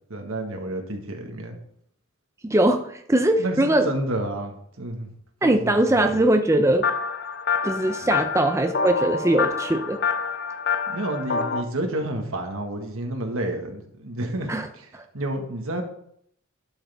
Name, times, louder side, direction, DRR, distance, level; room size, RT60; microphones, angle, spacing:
voice 1, 0.1-1.6 3.4-5.1 5.4-6.1 8.0-8.1 10.9-14.9 15.1-15.8, right 1 dB, 85° right, 3 dB, 1.6 m, -30 dB
voice 2, 2.4-3.9 5.4-6.9 7.6-10.0 14.5-14.7 14.9-15.0, right 1 dB, 15° right, 6 dB, 0.5 m, -21 dB
sound 1, 6.8-11.6, left 5 dB, 50° left, 0.6 m, -27 dB
11.5 x 6.5 x 3.5 m, 0.69 s
head